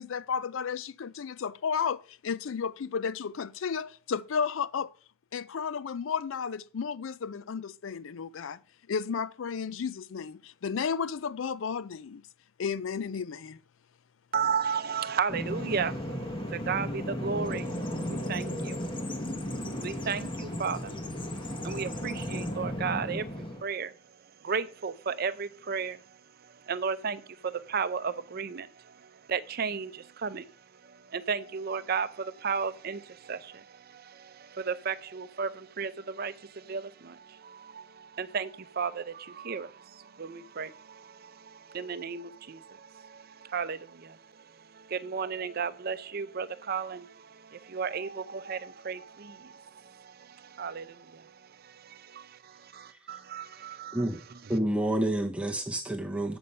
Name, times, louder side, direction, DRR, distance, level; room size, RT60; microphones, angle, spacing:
voice 1, 0.0-4.9 5.3-8.6 8.9-12.2 12.6-13.6, left 6 dB, 80° left, 0.4 m, -33 dB
voice 2, 14.3-16.0 16.5-17.8 18.1-18.8 19.8-20.9 21.4-23.9 24.4-26.0 26.7-28.7 29.3-30.5 31.1-43.2 43.5-44.2 44.8-51.3 51.6-54.0, right 6 dB, 50° right, 0.6 m, -34 dB
Bird vocalization bird call bird song, 15.3-23.6, equal, 25° left, 1.0 m, -35 dB
voice 3, 54.5-56.4, right 1 dB, 5° right, 0.8 m, -29 dB
8.0 x 6.8 x 5.4 m
head